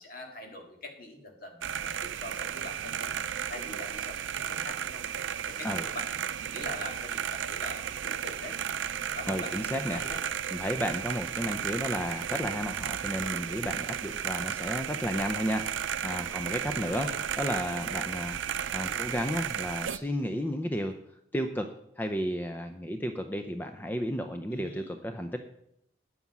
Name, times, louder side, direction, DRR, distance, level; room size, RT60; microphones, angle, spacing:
voice 1, 0.0-3.1 3.5-5.0 5.4-8.6 9.1-10.2 16.8-17.2 18.5-19.1 24.5-25.0, left 1 dB, 50° left, 2 dB, 2.1 m, -43 dB
sound 1, 1.6-20.0, right 9 dB, 85° right, 0.5 m, -34 dB
voice 2, 9.3-10.0 10.5-15.6 16.0-17.1 17.4-18.4 18.7-21.0 21.3-21.7 22.0-25.5, equal, 10° left, 6 dB, 0.5 m, -32 dB
9.5 x 8.5 x 6.0 m, 0.76 s
head